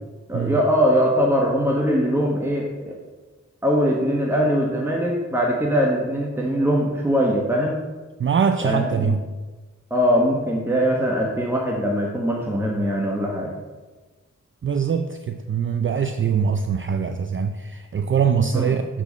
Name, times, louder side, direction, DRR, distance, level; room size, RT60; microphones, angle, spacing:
voice 1, 0.3-3.0 3.6-7.8 8.6-9.1 9.9-13.5 18.5-18.8, equal, 5° right, -2 dB, 1.1 m, -21 dB
voice 2, 8.2-9.2 14.6-19.0, right 6 dB, 40° right, 8 dB, 0.4 m, -23 dB
6.7 x 5.0 x 6.7 m, 1.3 s
wide cardioid pair, 100°, 31 cm